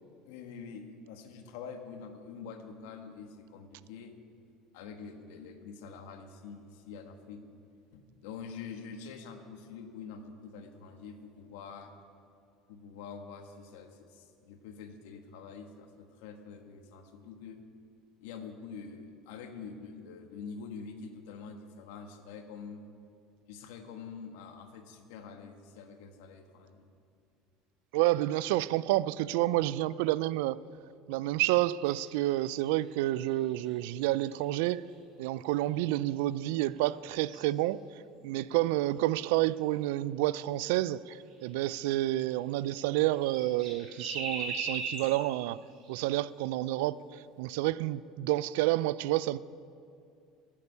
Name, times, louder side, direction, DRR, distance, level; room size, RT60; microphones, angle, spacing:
voice 1, 0.2-4.1 4.7-7.4 7.9-11.9 12.7-17.6 18.2-22.8 23.5-26.9, left 5 dB, 85° left, 1.2 m, -46 dB
voice 2, 27.9-30.6 31.1-34.8 35.2-37.8 38.2-45.6 45.9-49.4, right 16 dB, 75° right, 0.3 m, -29 dB
sound 1, 31.8-36.4 36.7-40.0 40.5-40.6 40.9-41.0 41.2-42.7 42.9-46.4 46.7-46.8 47.2-47.5, right 4 dB, 45° right, 2.8 m, -43 dB
15.5 x 8.4 x 5.5 m
cardioid pair, 180°, 0 cm